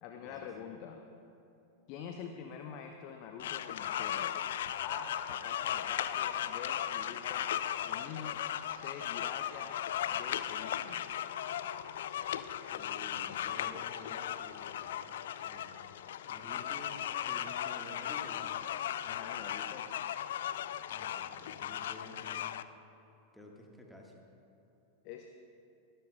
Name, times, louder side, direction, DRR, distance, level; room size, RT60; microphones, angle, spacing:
voice 1, 0.0-1.0 1.9-4.3 4.8-7.6 7.8-8.4 8.7-9.8 10.1-11.0 19.1-19.9 25.0-25.3, left 7 dB, 45° left, 4 dB, 0.7 m, -46 dB
sound 1, 3.4-22.6, left 10 dB, 60° left, 0.3 m, -37 dB
voice 2, 12.6-15.8 16.3-18.9 20.9-22.6 23.3-24.2, left 1 dB, 5° left, 0 dB, 1.4 m, -52 dB
22.5 x 12.0 x 2.2 m, 3.0 s
figure-of-eight pair, 90°, 0 cm